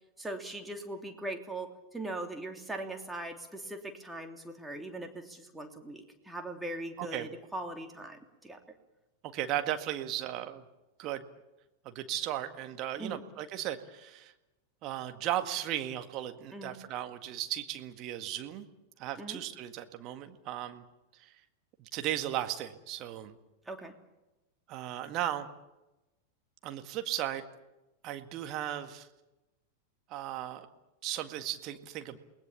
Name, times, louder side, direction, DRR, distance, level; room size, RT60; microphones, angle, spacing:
voice 1, 0.2-8.6 13.0-13.2 16.5-16.8 19.2-19.4 23.7-23.9, right 2 dB, 5° right, 3 dB, 3.0 m, -40 dB
voice 2, 9.3-10.6 11.0-11.2 11.9-14.3 14.8-18.7 19.0-20.8 21.2-21.3 21.8-23.3 24.7-25.5 26.6-27.4 28.0-29.1 30.1-30.7 31.0-32.2, right 12 dB, 40° right, 8 dB, 1.9 m, -36 dB
29.0 x 20.0 x 7.3 m, 1.0 s
figure-of-eight pair, 90°, 0 cm